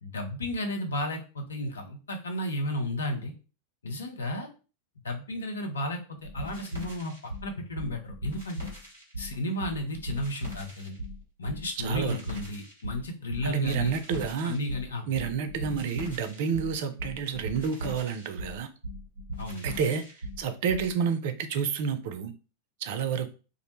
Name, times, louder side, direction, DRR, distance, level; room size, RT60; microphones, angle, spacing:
voice 1, 0.0-3.3 3.8-4.5 5.0-7.1 7.4-8.7 9.2-11.0 11.4-13.9 14.4-15.1 19.4-19.7, left 1 dB, 70° left, 0.6 m, -33 dB
sound 1, 6.2-20.9, equal, 90° left, 1.4 m, -39 dB
voice 2, 11.8-12.2 13.4-14.6 15.1-18.7 19.6-20.1 20.4-22.3 22.8-23.3, right 7 dB, 50° right, 0.4 m, -29 dB
2.4 x 2.1 x 3.0 m
figure-of-eight pair, 90°, 0 cm